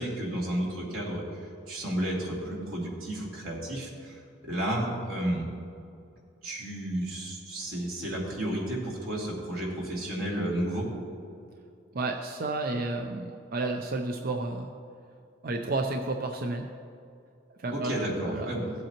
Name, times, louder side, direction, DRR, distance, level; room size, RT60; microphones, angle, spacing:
voice 1, 0.0-1.4 1.7-5.5 6.4-10.9 17.7-18.6, right 1 dB, 90° right, -4 dB, 2.6 m, -32 dB
voice 2, 11.9-14.7 15.4-16.7 17.6-17.9 18.2-18.5, right 2 dB, 45° right, 4 dB, 0.5 m, -31 dB
16.5 x 7.8 x 2.9 m, 2.4 s
head